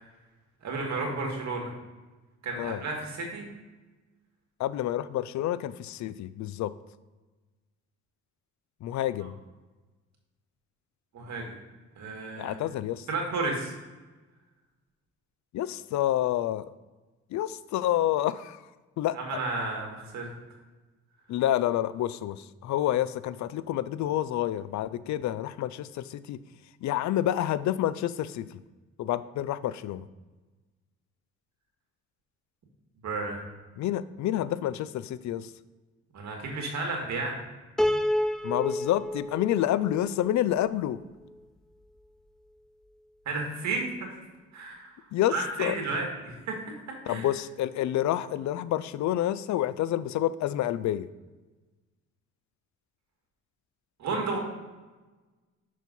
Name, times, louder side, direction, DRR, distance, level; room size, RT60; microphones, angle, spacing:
voice 1, 0.6-1.7 2.4-3.4 11.1-11.5 12.0-12.6 13.1-13.7 19.1-20.3 33.0-33.4 36.1-37.4 43.3-44.1 44.5-44.9 45.3-46.6 47.1-47.3 54.0-54.4, right 3 dB, 65° right, 1 dB, 2.1 m, -32 dB
voice 2, 4.6-6.7 8.8-9.4 12.4-13.1 15.5-16.7 17.3-18.7 19.0-19.4 21.3-26.4 26.8-28.6 29.0-30.1 33.8-35.5 38.4-41.0 45.1-45.8 47.1-51.1, left 12 dB, 70° left, 16 dB, 0.4 m, -28 dB
Piano, 37.8-41.0, left 1 dB, ahead, 0.3 m, -30 dB
6.2 x 4.5 x 5.4 m, 1.2 s
cardioid pair, 90°, 30 cm